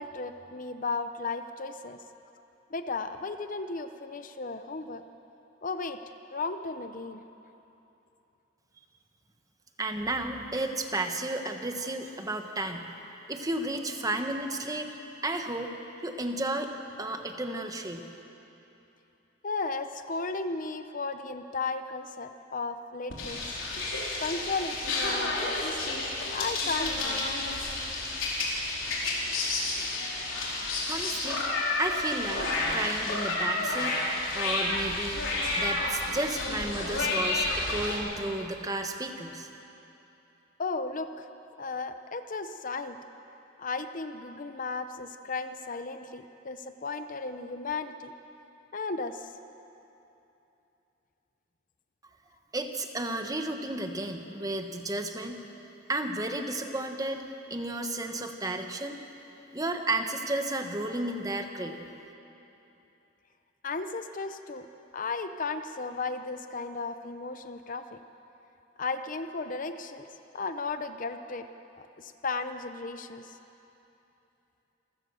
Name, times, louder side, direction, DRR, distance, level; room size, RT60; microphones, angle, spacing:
voice 1, 0.0-2.0 2.7-5.0 5.6-6.0 6.3-7.2 19.4-23.4 24.2-26.0 26.3-27.3 40.6-41.3 41.6-43.0 43.6-48.1 48.7-49.3 63.6-64.7 64.9-68.0 68.8-70.1 70.3-71.5 72.0-73.3, left 3 dB, 45° left, 9 dB, 0.7 m, -35 dB
voice 2, 9.8-12.9 13.3-14.9 15.2-15.7 16.0-16.7 17.0-18.0 30.8-31.5 31.8-34.0 34.3-35.2 35.5-39.5 52.5-55.4 55.9-57.2 57.5-59.0 59.5-61.8, right 2 dB, 20° right, 5 dB, 1.3 m, -33 dB
sound 1, 23.1-38.0, left 2 dB, 90° left, 4.3 m, -30 dB
27.5 x 15.5 x 6.9 m, 3.0 s
head